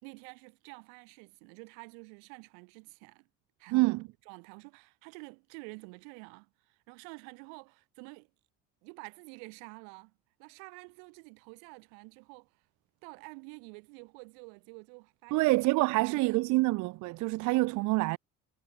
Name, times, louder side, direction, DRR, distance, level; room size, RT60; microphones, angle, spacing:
voice 1, 0.0-3.3 3.6-8.3 8.8-10.1 10.4-12.5 13.0-15.6 15.9-16.7, right 40 dB or more, 90° right, 2.2 m, -49 dB
voice 2, 15.3-18.2, right 22 dB, 65° right, 0.5 m, -26 dB
supercardioid pair, 95°, 32 cm